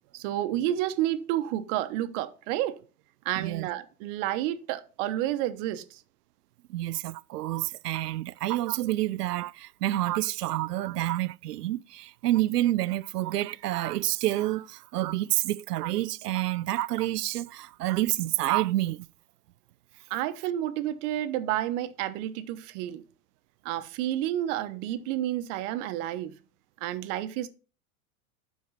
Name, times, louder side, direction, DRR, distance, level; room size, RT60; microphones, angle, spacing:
voice 1, 0.1-2.8 3.2-6.0 20.1-23.0 23.6-26.4 26.8-27.5, right 13 dB, 55° right, 1.2 m, -30 dB
voice 2, 3.4-3.7 6.7-19.1, right 15 dB, 90° right, 0.5 m, -28 dB
12.0 x 4.7 x 4.1 m
hypercardioid pair, 105°, 46 cm